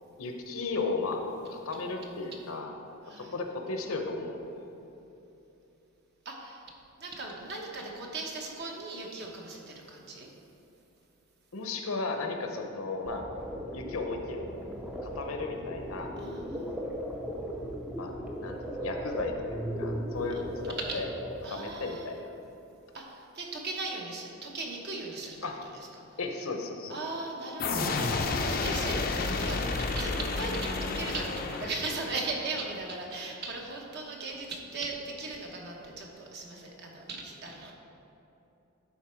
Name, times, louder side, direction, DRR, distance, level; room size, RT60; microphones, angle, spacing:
voice 1, 0.2-2.7 3.1-4.6 11.5-13.2 13.7-14.4 15.0-16.1 17.9-18.1 18.4-21.1 21.5-22.2 25.4-25.6 26.2-27.0, left 3 dB, 75° left, 4 dB, 0.8 m, -35 dB
voice 2, 3.0-3.4 6.2-6.6 7.0-10.3 16.2-16.8 21.4-22.2 22.9-26.0 26.9-37.7, right 3 dB, 50° right, 0 dB, 1.1 m, -38 dB
sound 1, 13.0-21.3, equal, 5° right, 0.5 m, -37 dB
sound 2, 27.6-32.3, left 3 dB, 40° left, 0.5 m, -31 dB
11.0 x 4.2 x 4.5 m, 2.9 s
head